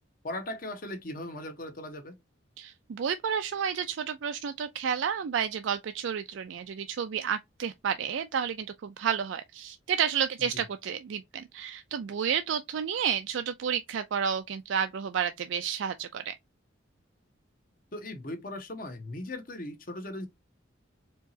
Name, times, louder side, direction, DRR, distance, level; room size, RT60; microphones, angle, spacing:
voice 1, 0.2-2.1 10.5-10.6 17.9-20.3, left 1 dB, 45° left, 1.0 m, -38 dB
voice 2, 2.6-16.3, right 7 dB, 75° right, 0.4 m, -31 dB
4.5 x 2.9 x 2.7 m
head